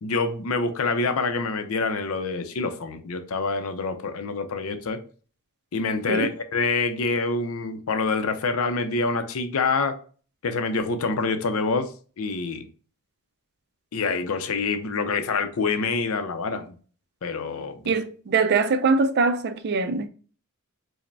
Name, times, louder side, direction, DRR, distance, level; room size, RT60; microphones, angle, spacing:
voice 1, 0.0-5.0 5.7-9.9 10.4-12.7 13.9-16.8 17.2-17.9, left 4 dB, 70° left, 0.5 m, -26 dB
voice 2, 17.9-20.1, right 4 dB, 50° right, 0.4 m, -22 dB
4.8 x 2.1 x 3.3 m
head